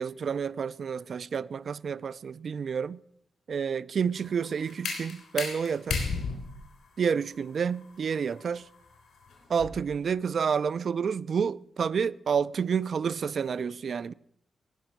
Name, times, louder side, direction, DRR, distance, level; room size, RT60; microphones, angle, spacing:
voice 1, 0.0-3.0 3.5-6.1 7.0-8.7 9.5-14.1, right 6 dB, 60° right, 0.4 m, -29 dB
sound 1, 4.2-9.9, left 5 dB, 90° left, 3.6 m, -36 dB
18.5 x 6.2 x 5.9 m
wide cardioid pair, 115°, 0 cm